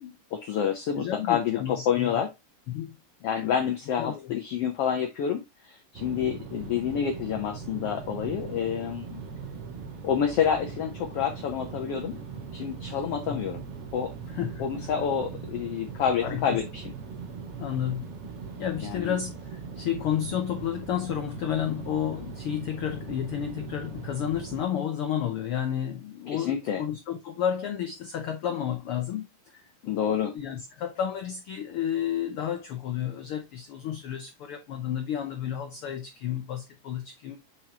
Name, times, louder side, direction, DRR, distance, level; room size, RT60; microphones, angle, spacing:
voice 1, 0.3-2.3 3.2-9.2 10.0-12.2 12.5-13.6 13.9-14.1 14.6-16.9 18.8-19.2 26.3-26.8 29.8-30.3, left 8 dB, 70° left, 1.4 m, -28 dB
voice 2, 0.9-2.2 2.7-3.0 4.0-4.3 13.3-13.4 14.3-14.7 16.2-16.6 17.6-18.1 18.6-37.4, left 9 dB, 90° left, 1.2 m, -31 dB
sound 1, 5.9-24.6, right 5 dB, 60° right, 1.9 m, -40 dB
7.3 x 4.6 x 2.8 m
omnidirectional pair, 3.6 m